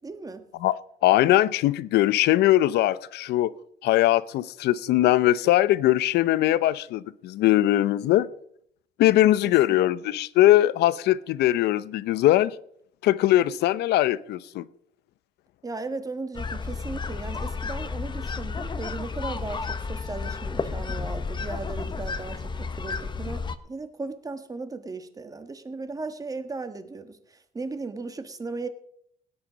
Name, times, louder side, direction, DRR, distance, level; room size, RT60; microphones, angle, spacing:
voice 1, 0.0-0.4 9.4-9.5 15.6-28.7, right 3 dB, 20° right, 1.6 m, -36 dB
voice 2, 1.0-3.5 3.8-8.3 9.0-12.5 13.0-14.6, left 14 dB, 75° left, 0.7 m, -21 dB
sound 1, 16.3-23.6, left 4 dB, 25° left, 1.1 m, -32 dB
18.0 x 9.7 x 5.2 m
cardioid pair, 110°, 17 cm